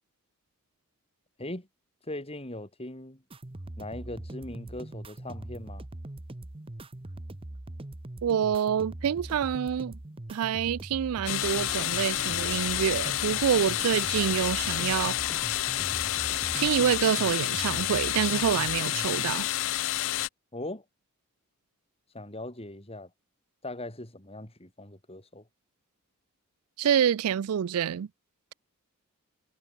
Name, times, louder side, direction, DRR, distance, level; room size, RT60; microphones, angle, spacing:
voice 1, 2.1-3.2 3.8-5.9 20.5-20.8 22.1-23.1 23.6-25.4, left 1 dB, 25° left, 5.2 m, -40 dB
sound 1, 3.3-19.3, right 1 dB, 25° right, 0.9 m, -42 dB
voice 2, 8.2-10.0 10.3-15.2 16.6-19.5 26.8-28.1, right 8 dB, 75° right, 0.4 m, -27 dB
sound 2, 11.3-20.3, left 15 dB, 60° left, 0.4 m, -29 dB
sound 3, 11.4-16.9, left 1 dB, 10° left, 3.2 m, -47 dB
head